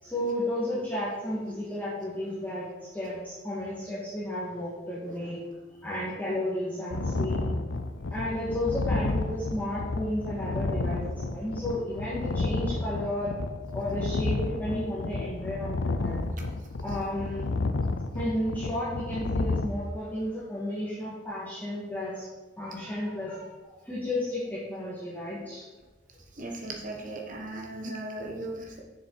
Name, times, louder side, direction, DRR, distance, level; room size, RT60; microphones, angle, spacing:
voice 1, 0.0-5.4 5.7-7.4 8.1-13.3 13.7-16.2 16.8-17.5 18.1-22.3 22.6-23.5 23.8-25.7, left 1 dB, 10° left, -10 dB, 1.9 m, -33 dB
sound 1, 6.9-19.7, left 2 dB, 85° left, 0.6 m, -31 dB
voice 2, 26.4-28.8, right 2 dB, 45° right, 0 dB, 1.4 m, -37 dB
6.9 x 6.5 x 4.8 m, 1.3 s
head